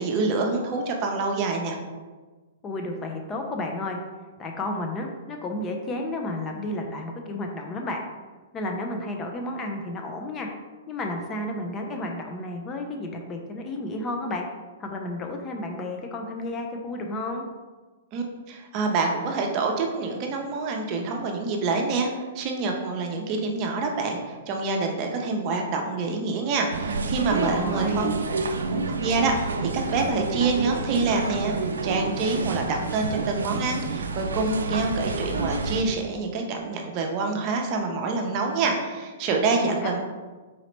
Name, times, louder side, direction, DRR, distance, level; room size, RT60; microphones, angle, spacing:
voice 1, 0.0-1.8 18.1-28.1 28.7-40.0, right 3 dB, 40° right, 2 dB, 0.6 m, -27 dB
voice 2, 2.6-4.0 4.4-8.0 8.5-10.5 10.9-14.5 14.8-17.4 27.3-28.1 39.5-40.0, left 1 dB, 25° left, 2 dB, 0.5 m, -32 dB
sound 1, 26.7-35.8, right 3 dB, 85° right, 0.3 m, -29 dB
4.1 x 2.8 x 3.1 m, 1.3 s
hypercardioid pair, 120°, 0 cm